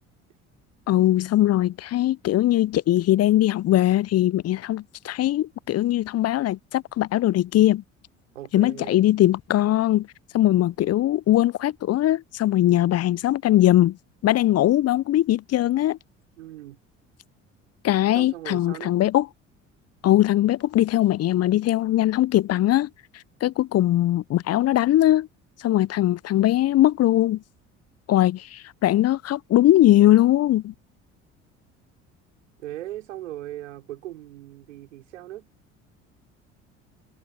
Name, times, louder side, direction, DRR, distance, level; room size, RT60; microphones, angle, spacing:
voice 1, 0.9-7.8 8.5-10.1 10.3-14.0 14.2-16.0 17.8-19.3 20.0-22.9 23.4-25.3 25.6-27.4 28.1-30.7, left 14 dB, 40° left, 0.8 m, -20 dB
voice 2, 8.3-9.0 16.4-16.8 18.1-18.9 32.6-35.5, right 14 dB, 75° right, 5.2 m, -38 dB
figure-of-eight pair, 55°, 37 cm